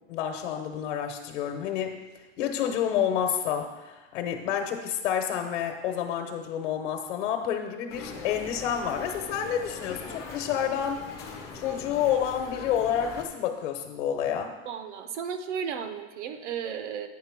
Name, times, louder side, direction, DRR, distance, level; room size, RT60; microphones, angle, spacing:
voice 1, 0.1-2.0 2.4-11.0 11.5-14.5, left 9 dB, 80° left, 4 dB, 1.0 m, -29 dB
sound 1, 7.9-13.3, left 4 dB, 10° left, 0.3 m, -41 dB
voice 2, 14.7-17.1, right 7 dB, 80° right, 9 dB, 0.9 m, -34 dB
9.3 x 3.7 x 5.9 m, 1.2 s
supercardioid pair, 180°, 35 cm